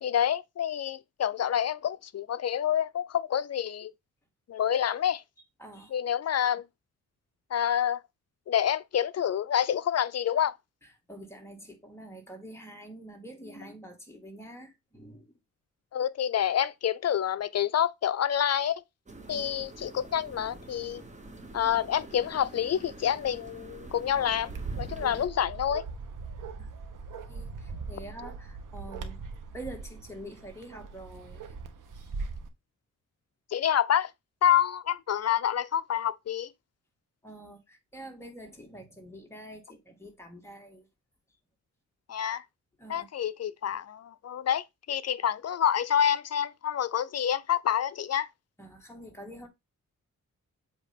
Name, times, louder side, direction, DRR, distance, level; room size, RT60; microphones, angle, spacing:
voice 1, 0.0-3.9 4.5-5.2 5.9-6.6 7.5-8.0 8.5-10.5 15.9-18.8 19.3-21.0 21.5-24.5 24.8-25.8 33.5-34.1 34.4-36.5 42.1-42.4 42.9-48.3, left 9 dB, 55° left, 0.5 m, -27 dB
voice 2, 5.6-5.9 10.8-15.3 19.3-19.5 26.6-26.7 27.3-29.2 29.5-31.4 31.9-32.1 37.2-40.9 42.8-43.1 48.6-49.5, right 1 dB, 10° left, 1.9 m, -46 dB
sound 1, 19.1-25.3, right 2 dB, 20° right, 1.3 m, -46 dB
Bark, 24.5-32.5, right 4 dB, 75° right, 1.2 m, -40 dB
7.9 x 2.8 x 5.2 m
cardioid pair, 110°, 32 cm